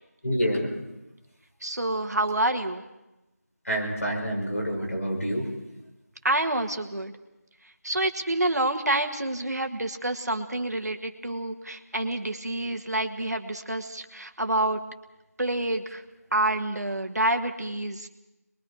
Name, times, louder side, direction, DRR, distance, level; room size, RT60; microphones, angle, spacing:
voice 1, 0.2-0.8 3.6-5.5, equal, 60° left, 0 dB, 6.3 m, -27 dB
voice 2, 1.6-2.8 6.2-7.1 7.8-14.8 15.4-16.0 16.3-18.1, right 1 dB, 75° right, 5 dB, 1.8 m, -28 dB
25.5 x 22.0 x 5.0 m, 0.96 s
figure-of-eight pair, 175°, 9 cm